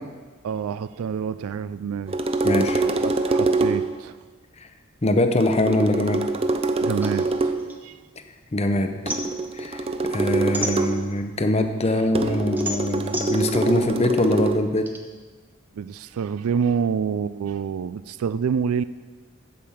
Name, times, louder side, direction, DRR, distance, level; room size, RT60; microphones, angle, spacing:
voice 1, 0.4-2.2 3.0-4.2 6.8-7.5 7.8-8.0 11.9-12.3 15.7-18.8, right 6 dB, 85° right, 15 dB, 0.4 m, -27 dB
sound 1, 2.1-4.0 5.4-7.7 9.1-11.1 12.1-14.6, right 3 dB, 25° right, 0.5 m, -24 dB
voice 2, 2.4-2.8 5.0-6.2 8.5-9.0 9.6-9.8 10.1-14.9, left 1 dB, 30° left, 8 dB, 0.7 m, -23 dB
sound 2, 7.0-8.5 8.8-11.4 11.8-15.0, equal, 10° right, 0.9 m, -34 dB
8.5 x 7.8 x 7.2 m, 1.4 s
head